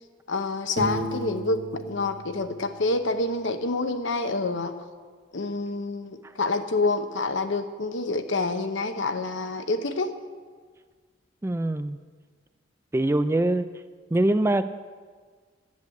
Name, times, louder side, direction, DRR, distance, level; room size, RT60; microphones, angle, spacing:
voice 1, 0.3-4.7 5.3-10.1, left 3 dB, 75° left, 8 dB, 0.9 m, -27 dB
Piano, 0.8-3.5, right 1 dB, 50° right, 1.4 m, -35 dB
voice 2, 11.4-12.0 12.9-13.7 14.1-14.6, right 1 dB, 15° right, 11 dB, 0.3 m, -23 dB
10.5 x 8.0 x 8.5 m, 1.5 s
head